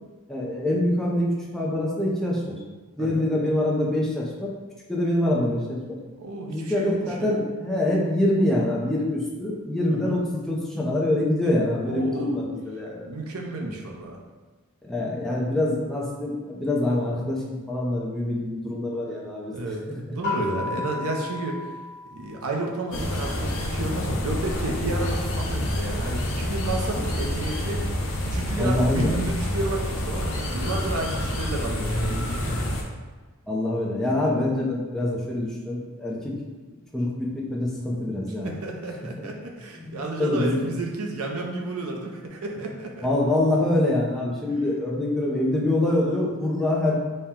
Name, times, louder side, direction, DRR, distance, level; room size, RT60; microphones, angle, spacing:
voice 1, 0.3-2.5 3.0-4.5 4.9-6.0 6.5-13.1 14.8-19.6 20.1-20.2 20.7-20.8 28.6-29.1 33.5-36.3 36.9-38.5 39.2-39.3 39.8-40.6 43.0-46.9, left 1 dB, ahead, -4 dB, 0.6 m, -25 dB
voice 2, 6.2-7.4 9.9-10.2 11.8-12.5 13.0-14.2 19.5-21.7 22.1-27.8 28.2-32.6 38.4-43.1, right 2 dB, 70° right, 1 dB, 0.6 m, -31 dB
sound 1, 20.2-22.9, left 3 dB, 45° left, 1.0 m, -34 dB
sound 2, 22.9-32.8, left 1 dB, 60° left, 0.6 m, -28 dB
4.3 x 2.2 x 3.6 m, 1.3 s
head